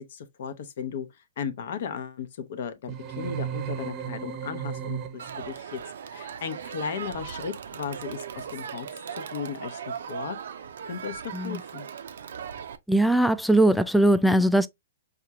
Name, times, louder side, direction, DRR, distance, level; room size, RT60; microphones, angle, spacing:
voice 1, 0.0-5.8 6.1-8.9 9.3-10.4 10.9-11.9, left 7 dB, 60° left, 0.7 m, -36 dB
sound 1, 2.9-5.5, right 9 dB, 30° right, 0.7 m, -34 dB
Crowd, 5.2-12.8, right 7 dB, 65° right, 0.5 m, -38 dB
voice 2, 12.9-14.7, right 1 dB, ahead, 0.3 m, -20 dB
5.4 x 2.4 x 2.8 m
hypercardioid pair, 120°, 0 cm